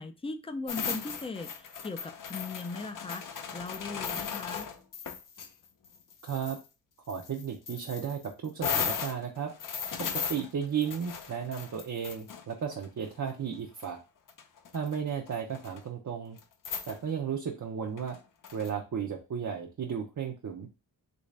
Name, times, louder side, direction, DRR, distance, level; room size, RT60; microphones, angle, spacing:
voice 1, 0.0-3.3 3.5-4.7, left 3 dB, 15° left, 7 dB, 0.4 m, -38 dB
sound 1, 0.7-5.5 5.8-6.6 7.1-12.9 13.8-13.9 14.3-15.0 15.3-15.8 16.4-16.5 16.6-17.0 18.0-18.7, left 6 dB, 50° left, 0.6 m, -37 dB
voice 2, 6.2-6.6 7.1-9.5 10.0-14.0 14.7-16.4 16.9-18.2 18.5-20.7, right 7 dB, 45° right, 2 dB, 0.6 m, -34 dB
3.1 x 2.6 x 3.2 m, 0.29 s
cardioid pair, 85°, 41 cm